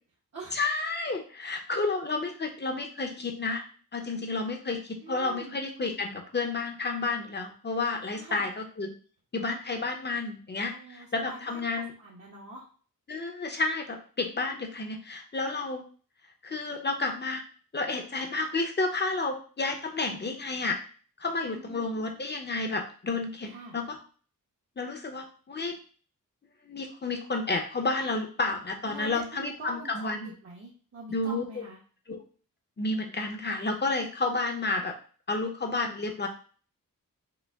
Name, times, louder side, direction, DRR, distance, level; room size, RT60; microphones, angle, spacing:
voice 1, 0.5-3.6 3.9-8.9 9.3-11.9 13.1-15.8 16.4-17.4 17.7-20.8 21.2-24.0 24.8-25.7 26.6-30.3 31.1-31.6 32.1-32.2 32.8-34.9 35.3-36.3, left 3 dB, 30° left, 3 dB, 0.7 m, -31 dB
voice 2, 5.0-5.6 8.1-8.5 10.7-12.6 21.5-22.2 23.4-23.7 28.9-31.8, right 2 dB, 50° right, -3 dB, 0.9 m, -44 dB
5.1 x 2.1 x 3.4 m, 0.41 s
wide cardioid pair, 110°, 34 cm